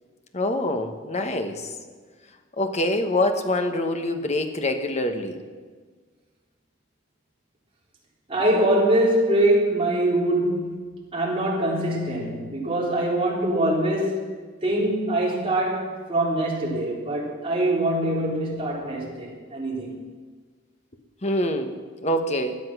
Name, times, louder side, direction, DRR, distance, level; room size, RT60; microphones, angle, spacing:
voice 1, 0.3-1.7 2.6-5.4 21.2-21.8 22.0-22.6, left 1 dB, 35° left, 6 dB, 1.2 m, -25 dB
voice 2, 8.3-14.2 14.6-20.0, right 1 dB, 30° right, -4 dB, 3.7 m, -23 dB
17.0 x 10.5 x 6.1 m, 1.5 s
head